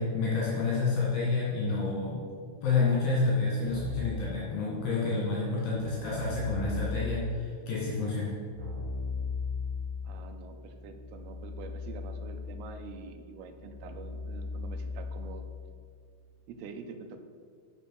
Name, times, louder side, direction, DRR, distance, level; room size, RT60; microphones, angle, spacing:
voice 1, 0.0-2.3 2.6-8.4, left 3 dB, 70° left, -6 dB, 3.3 m, -29 dB
Keyboard (musical), 3.6-4.3 5.7-7.3 8.5-15.6, left 4 dB, 55° right, 3.0 m, -38 dB
voice 2, 10.0-15.5 16.5-17.2, right 5 dB, 80° right, 6 dB, 2.7 m, -46 dB
7.5 x 6.1 x 6.3 m, 2.1 s
omnidirectional pair, 4.6 m